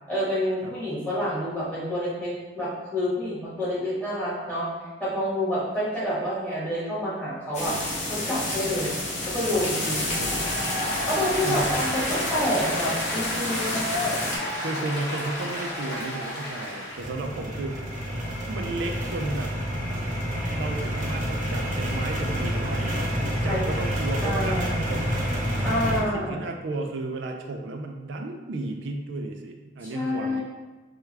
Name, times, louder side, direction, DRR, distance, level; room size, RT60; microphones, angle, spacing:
voice 1, 0.1-4.7 5.0-7.7 8.1-8.9 9.3-10.1 11.1-13.8 23.4-23.6 24.2-24.8 25.6-26.4 29.8-30.4, equal, 10° left, -9 dB, 1.3 m, -28 dB
sound 1, 7.5-14.4, left 1 dB, 40° left, 1.0 m, -30 dB
voice 2, 9.9-10.3 11.4-11.8 14.6-17.9 18.5-19.5 20.5-25.4 25.8-30.4, right 2 dB, 70° right, 3 dB, 0.4 m, -33 dB
Applause, 10.1-17.1, left 1 dB, 60° left, 1.2 m, -31 dB
sound 2, 17.0-26.0, equal, 40° right, 0.8 m, -28 dB
4.6 x 2.3 x 3.2 m, 1.2 s
head